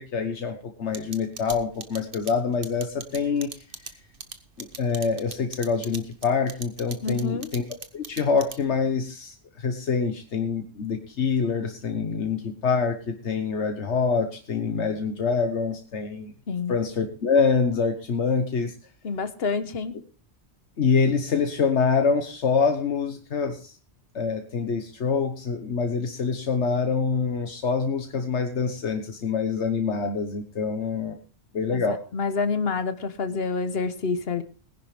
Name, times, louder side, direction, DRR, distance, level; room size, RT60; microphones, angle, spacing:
voice 1, 0.0-3.5 4.6-7.6 7.9-16.3 16.7-18.7 20.8-23.7 24.1-31.2 31.5-32.0, left 5 dB, 85° left, 5 dB, 1.5 m, -25 dB
sound 1, 0.9-8.8, right 5 dB, 55° right, 1.3 m, -39 dB
voice 2, 7.0-7.5 16.5-16.8 19.0-20.0 31.7-34.4, left 4 dB, 60° left, 11 dB, 1.3 m, -28 dB
19.5 x 10.5 x 3.4 m, 0.37 s
omnidirectional pair, 1.1 m